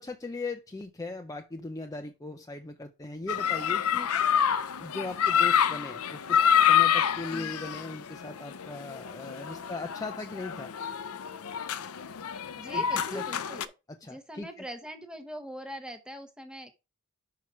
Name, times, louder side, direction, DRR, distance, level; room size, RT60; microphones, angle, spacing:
voice 1, 0.0-4.1 4.8-10.7 12.7-13.2 13.9-14.6, left 2 dB, 15° left, 5 dB, 0.5 m, -39 dB
sound 1, 3.3-13.7, left 8 dB, 80° left, 0.6 m, -27 dB
voice 2, 12.6-13.7 14.1-16.7, equal, 5° right, 7 dB, 0.9 m, -42 dB
5.8 x 4.7 x 5.9 m, 0.28 s
head